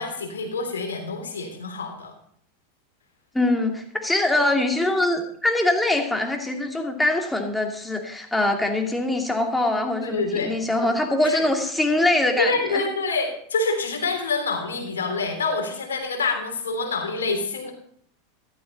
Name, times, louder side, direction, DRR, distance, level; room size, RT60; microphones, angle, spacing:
voice 1, 0.0-2.1 10.0-10.5 10.8-10.9 11.2-11.4 12.4-17.7, left 3 dB, 75° left, 4 dB, 3.4 m, -27 dB
voice 2, 3.3-12.8, left 2 dB, 5° left, 2 dB, 2.6 m, -23 dB
13.5 x 12.0 x 4.1 m, 0.64 s
figure-of-eight pair, 85°, 0 cm